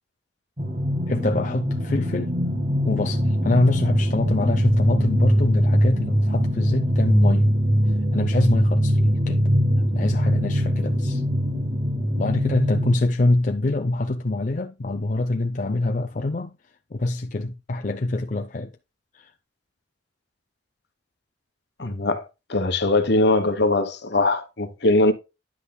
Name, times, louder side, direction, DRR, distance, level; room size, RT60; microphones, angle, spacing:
sound 1, 0.6-12.9, equal, 40° right, 1.7 m, -22 dB
voice 1, 1.1-2.3 2.8-7.6 8.1-9.4 9.9-11.2 12.1-16.5 16.9-18.7 19.1-19.3, left 2 dB, 45° left, 0.5 m, -24 dB
voice 2, 21.8-25.1, left 2 dB, 65° left, 1.2 m, -21 dB
10.0 x 8.0 x 2.2 m
head